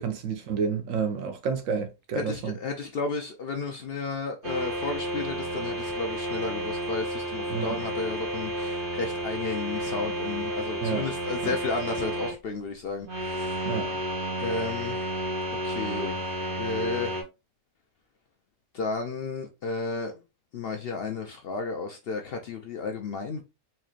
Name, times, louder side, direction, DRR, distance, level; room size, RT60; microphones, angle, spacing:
voice 1, 0.0-2.5 7.5-7.8 10.8-11.0 11.4-11.6 13.7-14.0, right 6 dB, 70° right, 1.1 m, -30 dB
voice 2, 2.1-13.8 14.4-15.1 15.6-17.2 18.7-20.1 20.5-23.4, left 4 dB, 60° left, 0.6 m, -33 dB
sound 1, 4.4-12.3 13.0-17.2, right 1 dB, 40° right, 1.2 m, -31 dB
4.3 x 3.0 x 2.4 m
omnidirectional pair, 1.4 m